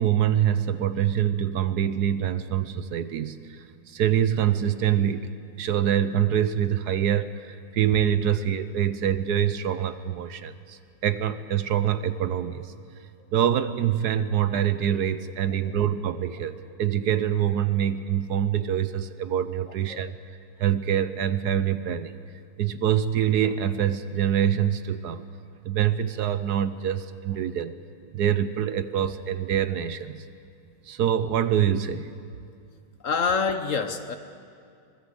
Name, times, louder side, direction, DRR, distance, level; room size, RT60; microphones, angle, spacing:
voice 1, 0.0-5.3 5.6-12.7 13.3-20.1 20.6-22.2 22.6-25.2 25.6-27.8 28.1-30.3 30.9-32.1, right 9 dB, 65° right, 13 dB, 1.2 m, -25 dB
voice 2, 33.0-34.2, left 5 dB, 55° left, 9 dB, 1.1 m, -26 dB
25.0 x 20.0 x 8.0 m, 2.4 s
omnidirectional pair, 1.9 m